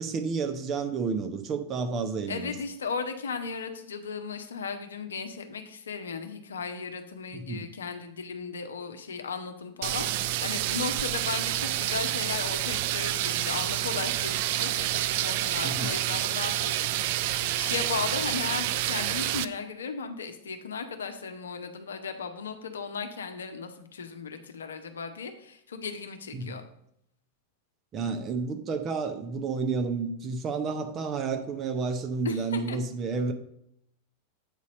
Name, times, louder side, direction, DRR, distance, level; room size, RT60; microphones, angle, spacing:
voice 1, 0.0-2.5 7.3-7.6 15.6-16.0 26.3-26.6 27.9-33.3, right 4 dB, 30° right, 0.8 m, -31 dB
voice 2, 2.3-26.6 32.2-32.8, left 5 dB, 70° left, 0.8 m, -36 dB
sound 1, 9.8-19.4, right 13 dB, 50° right, 0.3 m, -28 dB
8.2 x 4.2 x 5.1 m
figure-of-eight pair, 90°, 0 cm